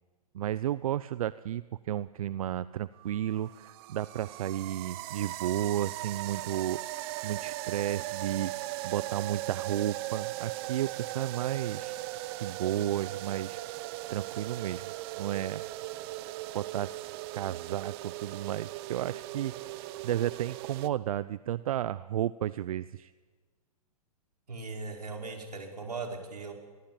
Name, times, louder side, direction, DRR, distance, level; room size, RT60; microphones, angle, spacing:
voice 1, 0.3-8.5 8.8-12.0 12.4-13.8 14.1-14.9 15.2-15.6 16.5-17.1 17.3-19.8 20.0-23.1, right 12 dB, 65° right, 17 dB, 0.7 m, -33 dB
sound 1, 3.0-20.9, right 17 dB, 40° right, 1.1 m, -39 dB
voice 2, 24.5-26.5, right 3 dB, 90° right, 3 dB, 5.2 m, -38 dB
26.0 x 21.0 x 8.8 m, 1.4 s
hypercardioid pair, 125°, 20 cm